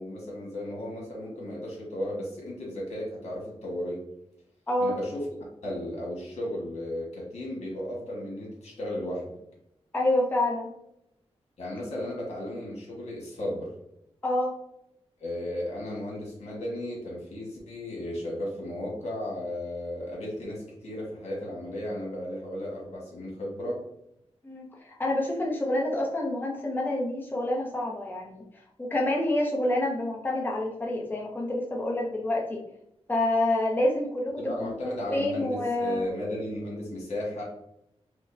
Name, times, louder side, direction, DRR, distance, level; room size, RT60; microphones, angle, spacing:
voice 1, 0.0-4.0 4.8-5.2 5.6-9.4 11.6-13.7 15.2-23.8 34.4-37.4, left 1 dB, 80° left, -3 dB, 1.2 m, -34 dB
voice 2, 4.7-5.0 9.9-10.7 14.2-14.5 24.4-28.4 28.8-32.6 33.1-34.7 35.1-36.1, left 1 dB, 20° left, -2 dB, 0.6 m, -27 dB
5.0 x 2.1 x 2.5 m, 0.81 s
wide cardioid pair, 105°, 11 cm